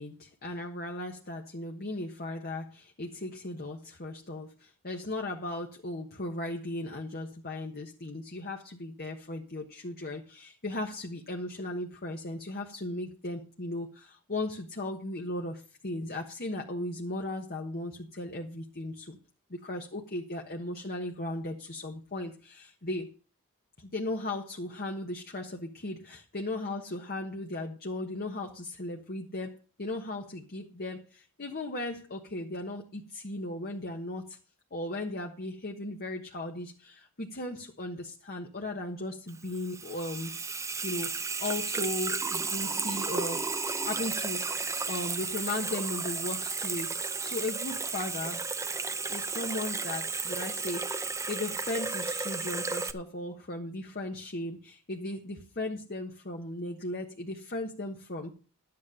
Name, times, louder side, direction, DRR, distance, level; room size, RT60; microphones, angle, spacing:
voice 1, 0.0-19.2 19.5-23.1 23.8-34.4 34.7-40.3 40.8-43.4 43.8-44.5 44.9-48.4 49.1-58.3, left 2 dB, 45° left, 1.4 m, -37 dB
Water tap faucet / Sink (filling or washing), 39.3-52.9, right 4 dB, 15° right, 0.7 m, -33 dB
12.0 x 9.5 x 5.0 m
head